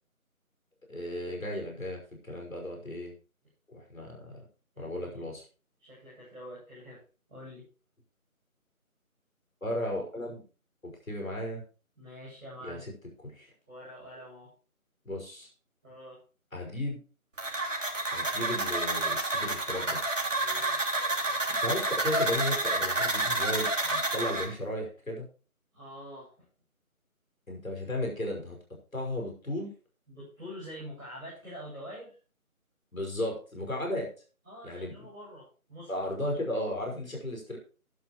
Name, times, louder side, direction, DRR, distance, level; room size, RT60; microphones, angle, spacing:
voice 1, 0.9-3.1 3.7-4.4 4.8-5.4 9.6-10.4 10.8-11.6 12.6-12.9 13.2-13.5 15.0-15.5 16.5-17.0 18.1-20.0 21.6-25.3 27.5-28.6 28.9-29.7 32.9-34.1 34.6-34.9 35.9-37.6, left 1 dB, 65° left, 1 dB, 5.7 m, -35 dB
voice 2, 4.7-5.3 5.8-7.0 7.3-7.6 11.9-12.8 13.7-14.5 15.8-16.2 20.4-20.9 25.7-26.4 30.1-32.2 34.4-35.9, equal, ahead, -24 dB, 2.5 m, -46 dB
sound 1, 17.4-24.5, right 2 dB, 60° right, 2.9 m, -29 dB
12.5 x 11.0 x 3.1 m, 0.36 s
figure-of-eight pair, 180°, 43 cm